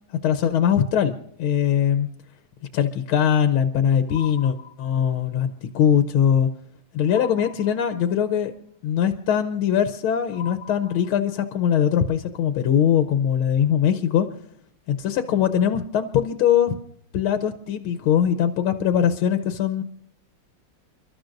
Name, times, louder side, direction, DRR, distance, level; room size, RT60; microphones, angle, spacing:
voice 1, 0.2-2.1 2.7-6.5 6.9-8.5 8.8-14.3 14.9-16.8 17.1-19.8, left 9 dB, 80° left, 9 dB, 1.7 m, -21 dB
sound 1, 4.1-5.3 7.1-8.3 10.3-11.6, left 9 dB, 55° left, 1.1 m, -42 dB
29.5 x 13.0 x 2.6 m, 0.66 s
omnidirectional pair, 2.3 m